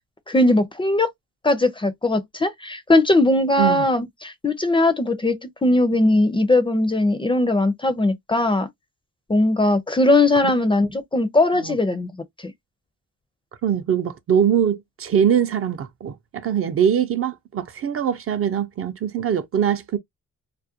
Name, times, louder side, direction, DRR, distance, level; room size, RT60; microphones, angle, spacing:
voice 1, 0.3-1.1 1.4-8.7 9.3-12.1 12.4-12.5, left 2 dB, 15° left, 0.5 m, -19 dB
voice 2, 13.6-20.0, right 8 dB, 45° right, 0.5 m, -22 dB
2.4 x 2.1 x 2.7 m
cardioid pair, 90°, 30 cm